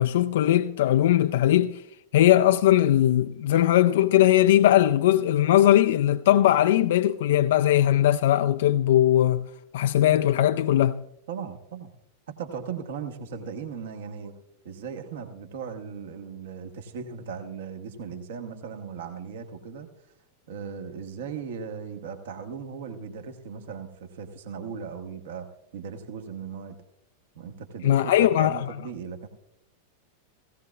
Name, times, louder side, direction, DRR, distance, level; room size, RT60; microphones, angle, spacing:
voice 1, 0.0-1.8 2.1-9.5 9.7-11.0 27.8-28.6, left 12 dB, 55° left, 0.4 m, -20 dB
voice 2, 11.3-11.9 12.3-14.3 14.6-19.9 20.5-25.5 25.7-26.8 27.3-29.3, right 6 dB, 55° right, 1.3 m, -37 dB
17.0 x 16.5 x 2.4 m
figure-of-eight pair, 90°, 0 cm